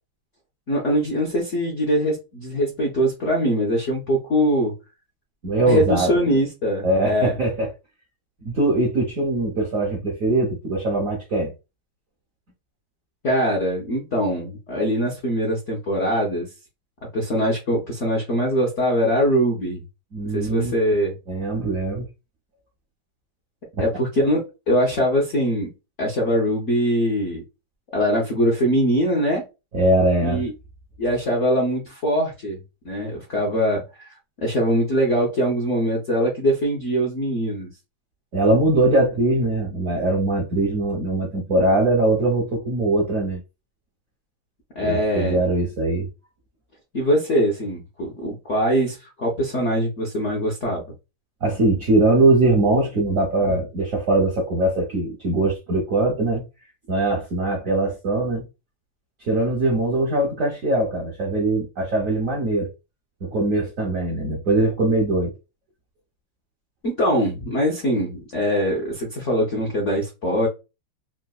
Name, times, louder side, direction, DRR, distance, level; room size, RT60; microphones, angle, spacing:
voice 1, 0.7-4.7 5.7-7.3 13.2-16.5 17.1-19.8 20.3-21.1 23.8-25.7 26.0-27.4 27.9-29.4 30.2-30.5 31.0-32.6 32.8-34.1 34.4-37.7 44.8-45.4 46.9-50.8 53.4-53.6 66.8-70.5, equal, 65° left, 0.7 m, -22 dB
voice 2, 5.4-6.4 6.8-7.7 8.4-11.5 20.1-20.7 21.3-22.1 23.8-23.9 29.7-30.4 38.3-43.4 44.8-46.1 51.4-56.4 56.9-58.4 59.2-62.7 63.2-65.3, right 2 dB, 65° right, 0.8 m, -21 dB
3.8 x 2.2 x 2.3 m
omnidirectional pair, 2.2 m